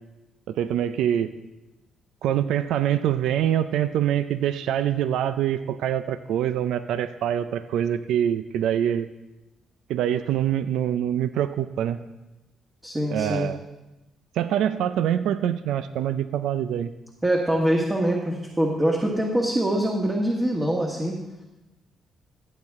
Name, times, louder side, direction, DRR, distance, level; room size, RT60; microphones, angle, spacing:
voice 1, 0.5-1.3 2.2-9.1 9.9-12.0 13.1-13.6 14.3-16.9, right 10 dB, 85° right, 12 dB, 0.4 m, -25 dB
voice 2, 12.8-13.5 17.2-21.2, right 1 dB, 20° right, -1 dB, 1.6 m, -24 dB
14.5 x 8.0 x 3.6 m, 1.0 s
cardioid pair, 90°, 0 cm